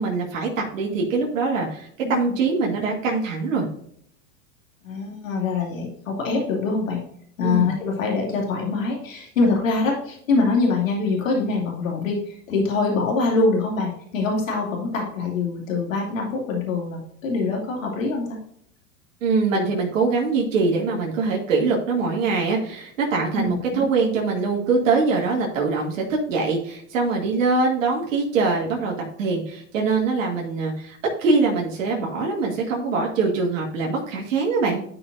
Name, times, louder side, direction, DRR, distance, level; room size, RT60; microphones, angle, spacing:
voice 1, 0.0-3.7 7.4-7.7 19.2-28.9 29.2-34.8, right 4 dB, 75° right, -1 dB, 2.5 m, -23 dB
voice 2, 4.8-7.0 7.4-18.4 23.3-23.8, left 3 dB, 85° left, -1 dB, 2.6 m, -24 dB
11.5 x 5.9 x 2.6 m, 0.66 s
hypercardioid pair, 100°, 39 cm